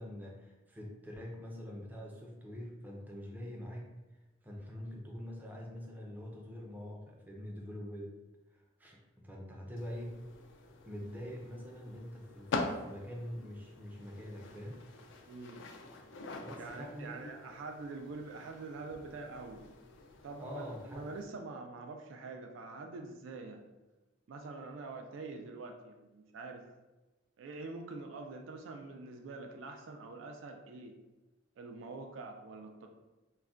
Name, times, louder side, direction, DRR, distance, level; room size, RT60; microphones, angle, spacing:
voice 1, 0.0-4.2 4.4-8.2 8.5-10.2 10.8-14.8 16.4-17.3 20.4-21.1, equal, 10° right, -2 dB, 0.4 m, -45 dB
sound 1, 9.8-21.2, left 3 dB, 70° left, 0.4 m, -45 dB
voice 2, 15.3-15.6 16.6-19.7 20.2-23.7 24.3-26.7 27.4-31.0 31.6-32.9, right 3 dB, 80° right, 4 dB, 0.3 m, -45 dB
2.4 x 2.1 x 3.5 m, 1.1 s
head